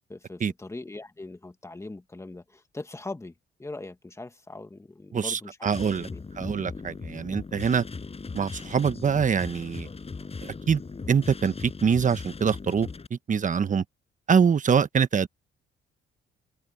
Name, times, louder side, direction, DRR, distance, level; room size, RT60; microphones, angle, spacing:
voice 1, 0.1-3.3 3.6-5.7 6.0-6.2, left 2 dB, 15° left, 1.9 m, -41 dB
voice 2, 5.1-6.1 6.4-7.8 8.3-9.9 10.4-10.8 11.1-13.8 14.3-15.3, right 6 dB, 40° right, 1.3 m, -24 dB
sound 1, 5.7-13.1, left 4 dB, 30° left, 6.8 m, -39 dB
cardioid pair, 90°, 20 cm